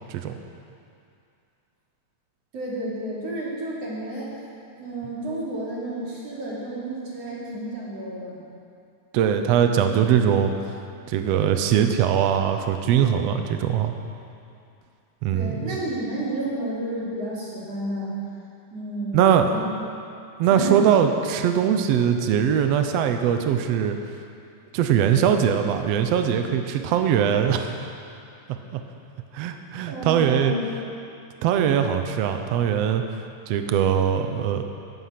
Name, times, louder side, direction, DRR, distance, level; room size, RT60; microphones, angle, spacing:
voice 1, 2.5-4.3 4.8-8.4 15.3-18.1 18.7-19.7 20.5-21.3 29.9-30.7, right 1 dB, 45° right, -6 dB, 4.0 m, -31 dB
voice 2, 9.1-10.5 11.1-13.9 15.2-15.6 19.1-19.5 20.4-24.0 24.7-27.7 28.7-28.8 29.3-30.5 31.4-33.0 33.5-34.6, right 8 dB, 85° right, 6 dB, 1.4 m, -21 dB
16.0 x 11.0 x 5.9 m, 2.5 s
omnidirectional pair, 3.9 m